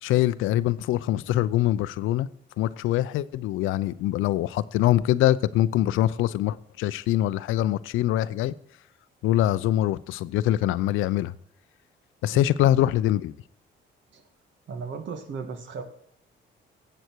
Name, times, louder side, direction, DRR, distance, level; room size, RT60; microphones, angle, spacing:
voice 1, 0.0-2.3 2.6-8.5 9.2-11.3 12.2-13.3, left 13 dB, 90° left, 0.5 m, -24 dB
voice 2, 14.7-15.8, right 5 dB, 70° right, 1.7 m, -35 dB
16.0 x 7.9 x 4.6 m
cardioid pair, 90°, 20 cm